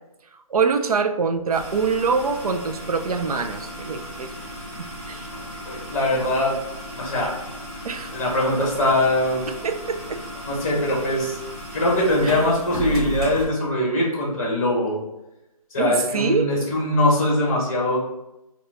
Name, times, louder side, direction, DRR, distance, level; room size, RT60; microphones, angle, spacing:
voice 1, 0.5-4.3 4.8-5.3 7.8-8.1 9.6-10.2 12.2-12.3 15.8-16.5, right 5 dB, 80° right, 7 dB, 0.5 m, -24 dB
sound 1, 1.5-13.4, right 1 dB, 10° right, 0.7 m, -35 dB
voice 2, 5.3-6.6 6.9-7.4 8.1-9.5 10.5-11.4 11.7-15.0 15.7-18.0, left 1 dB, 25° left, -2 dB, 1.0 m, -22 dB
3.9 x 2.3 x 3.6 m, 0.94 s
hypercardioid pair, 170°, 19 cm